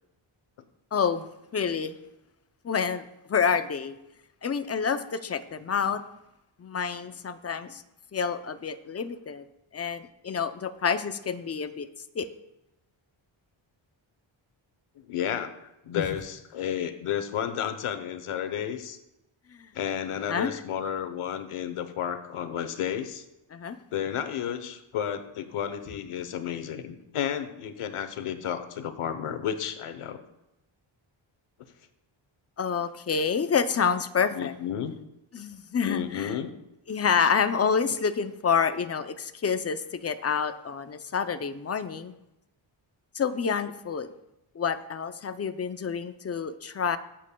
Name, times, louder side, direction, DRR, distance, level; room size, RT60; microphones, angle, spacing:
voice 1, 0.9-2.0 2.6-4.0 4.4-6.0 6.6-7.8 8.1-9.5 9.7-11.9 12.1-12.3 15.9-16.0 19.5-19.7 20.3-20.6 23.5-23.8 32.6-34.5 35.3-36.4 36.9-42.1 43.1-44.1 44.5-47.0, left 6 dB, 30° left, 11 dB, 0.5 m, -28 dB
voice 2, 15.0-19.0 19.7-23.2 23.9-30.2 34.3-34.9 35.8-36.5 37.2-37.3, left 9 dB, 85° left, 9 dB, 1.0 m, -32 dB
21.5 x 7.4 x 2.2 m, 0.90 s
wide cardioid pair, 130°, 50 cm